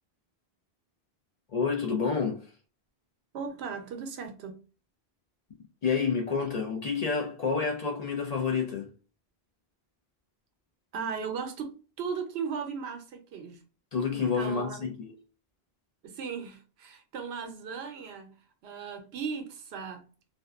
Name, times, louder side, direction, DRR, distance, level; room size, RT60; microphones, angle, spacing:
voice 1, 1.5-2.5 5.8-8.9 13.9-15.1, left 5 dB, 50° left, 0.5 m, -29 dB
voice 2, 3.3-4.6 10.9-13.6 14.1-14.9 16.0-18.3 18.6-20.1, right 6 dB, 85° right, 0.9 m, -37 dB
2.6 x 2.1 x 2.3 m
omnidirectional pair, 1.0 m